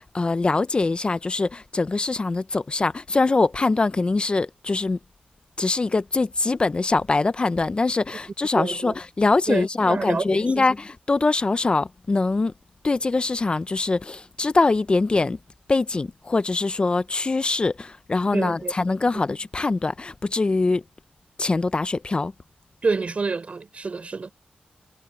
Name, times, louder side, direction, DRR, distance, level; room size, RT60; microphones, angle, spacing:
voice 1, 0.0-5.0 5.6-12.5 12.8-15.4 15.7-20.8 21.4-22.3, left 3 dB, 35° left, 0.6 m, -23 dB
voice 2, 8.5-8.9 9.5-10.7 18.3-18.7 22.8-24.3, right 4 dB, 45° right, 3.9 m, -27 dB
wide cardioid pair, 95°, 3 cm